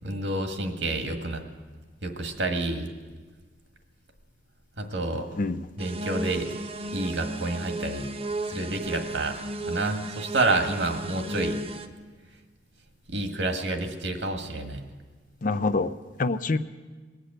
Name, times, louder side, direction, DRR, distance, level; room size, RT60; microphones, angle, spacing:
voice 1, 0.0-1.4 2.0-2.9 4.8-5.3 5.8-6.6 6.9-8.1 8.5-9.4 9.6-11.6 13.1-14.9, right 2 dB, 90° right, 4 dB, 1.7 m, -29 dB
voice 2, 5.1-5.7 15.4-16.6, left 3 dB, 50° left, 12 dB, 0.5 m, -27 dB
sound 1, 5.8-11.9, right 2 dB, 35° right, 0.8 m, -34 dB
21.0 x 8.2 x 8.0 m, 1.4 s
head